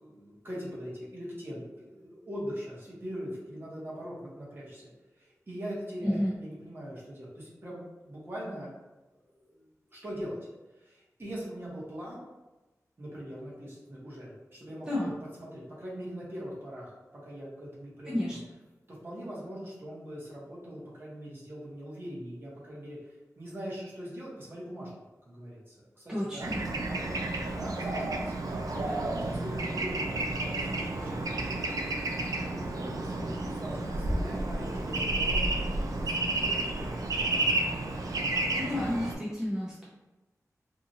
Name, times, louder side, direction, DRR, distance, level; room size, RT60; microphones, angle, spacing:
voice 1, 0.0-4.9 5.2-8.8 9.1-10.4 10.8-12.2 13.0-15.1 15.4-17.0 17.2-18.4 18.9-24.9 25.2-26.5 26.9-31.6 32.4-37.1, equal, 40° right, -7 dB, 1.1 m, -42 dB
voice 2, 6.0-6.3 14.9-15.1 18.1-18.4 26.1-26.6 38.6-39.9, left 1 dB, 10° right, -7 dB, 0.6 m, -31 dB
Bird / Traffic noise roadway noise, 26.4-39.1, right 2 dB, 80° right, 0.4 m, -31 dB
2.8 x 2.5 x 2.7 m, 1.1 s
wide cardioid pair, 85°, 6 cm